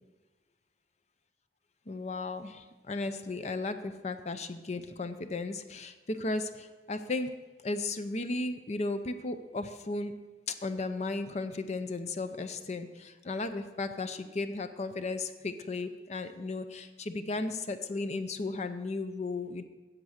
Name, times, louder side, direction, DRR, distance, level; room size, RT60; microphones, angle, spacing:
voice 1, 1.9-7.3 7.6-10.1 10.5-19.6, left 3 dB, 40° left, 10 dB, 0.6 m, -35 dB
10.5 x 7.5 x 6.4 m, 1.2 s
head